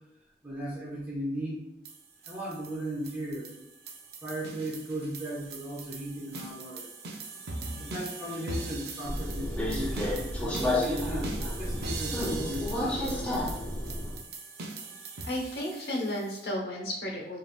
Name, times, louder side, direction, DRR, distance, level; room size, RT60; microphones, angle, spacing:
voice 1, 0.4-1.6 2.3-3.5 4.2-6.9 7.8-13.4, equal, 10° right, -8 dB, 1.0 m, -37 dB
sound 1, 1.9-16.4, right 3 dB, 65° right, 0.6 m, -41 dB
Subway metro underground, 9.0-14.2, left 1 dB, 5° left, 0.6 m, -31 dB
voice 2, 15.2-17.4, left 1 dB, 60° left, -1 dB, 0.9 m, -33 dB
5.3 x 2.7 x 2.3 m, 0.79 s
head